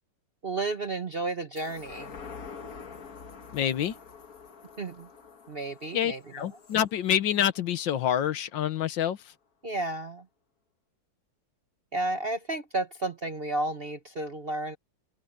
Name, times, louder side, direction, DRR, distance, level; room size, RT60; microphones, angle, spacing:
voice 1, 0.4-2.1 4.8-5.1 5.5-6.4 9.6-10.2 11.9-14.8, right 2 dB, 35° right, 1.0 m, -32 dB
sound 1, 1.6-8.3 8.8-8.9, left 5 dB, 50° left, 1.9 m, -47 dB
voice 2, 3.5-3.9 5.9-9.2, left 10 dB, 75° left, 1.7 m, -27 dB
open air
omnidirectional pair, 2.1 m